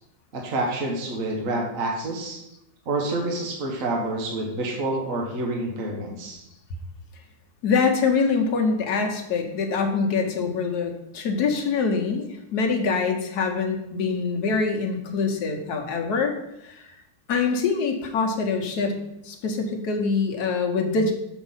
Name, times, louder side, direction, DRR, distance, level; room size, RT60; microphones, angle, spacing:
voice 1, 0.3-2.4 2.9-6.4, right 2 dB, 50° right, 0 dB, 1.5 m, -28 dB
voice 2, 7.6-16.3 16.6-16.9 17.3-19.0 19.2-21.1, left 4 dB, 65° left, 4 dB, 1.4 m, -24 dB
7.1 x 5.2 x 5.6 m, 0.85 s
omnidirectional pair, 1.9 m